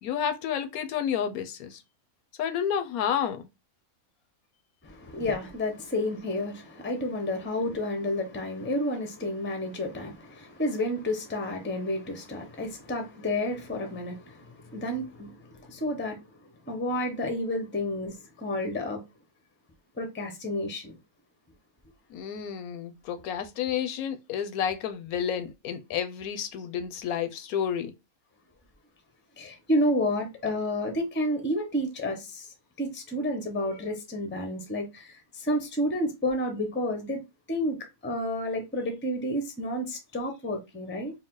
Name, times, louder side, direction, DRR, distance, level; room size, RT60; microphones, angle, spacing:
voice 1, 0.0-1.8 2.4-3.5 22.1-27.9, left 8 dB, 80° left, 1.1 m, -30 dB
voice 2, 4.8-16.2 16.7-19.0 20.0-20.9 29.4-32.5 32.8-37.2 37.5-37.8 38.0-41.1, left 1 dB, 10° left, 0.5 m, -30 dB
4.7 x 2.0 x 3.8 m
omnidirectional pair, 1.5 m